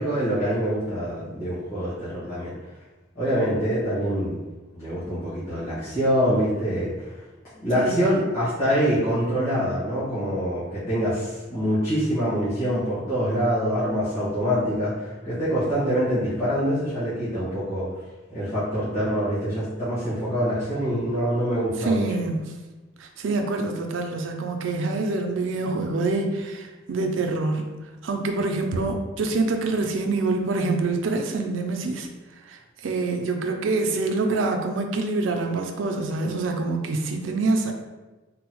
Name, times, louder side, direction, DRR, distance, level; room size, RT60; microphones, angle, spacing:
voice 1, 0.0-2.5 3.1-4.3 4.7-7.1 7.5-17.9 18.3-22.0, equal, 50° left, -14 dB, 1.3 m, -25 dB
voice 2, 7.7-8.1 21.8-22.5 23.0-27.7 28.0-32.1 32.5-37.7, right 3 dB, 85° right, 4 dB, 0.4 m, -26 dB
3.8 x 2.0 x 2.9 m, 1.2 s
head